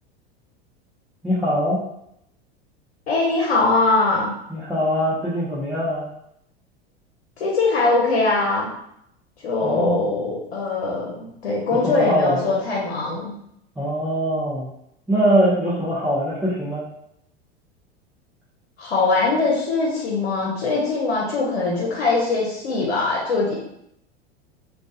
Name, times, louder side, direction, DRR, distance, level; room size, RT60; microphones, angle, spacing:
voice 1, 1.2-1.8 4.5-6.1 9.6-10.1 11.8-12.4 13.8-14.7 15.1-16.8, equal, 5° right, -9 dB, 0.5 m, -22 dB
voice 2, 3.1-4.3 7.4-8.7 9.4-13.3 18.8-23.5, left 3 dB, 85° left, -3 dB, 0.7 m, -21 dB
2.3 x 2.2 x 2.6 m, 0.77 s
hypercardioid pair, 90°, 32 cm